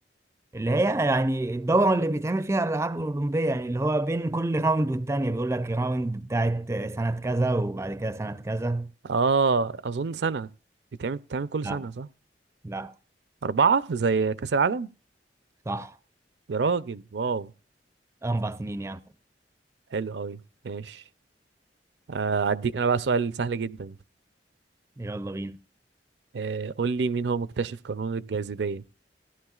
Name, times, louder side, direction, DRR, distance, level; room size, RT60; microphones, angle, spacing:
voice 1, 0.5-8.9 11.6-11.8 12.6-12.9 15.7-16.0 18.2-19.0 25.0-25.6, right 2 dB, 15° right, 0.4 m, -26 dB
voice 2, 9.0-10.5 11.0-12.1 13.4-14.9 16.5-17.5 19.9-20.4 20.6-21.0 22.1-23.9 26.3-28.8, right 5 dB, 75° right, 0.5 m, -26 dB
16.5 x 11.0 x 2.4 m
head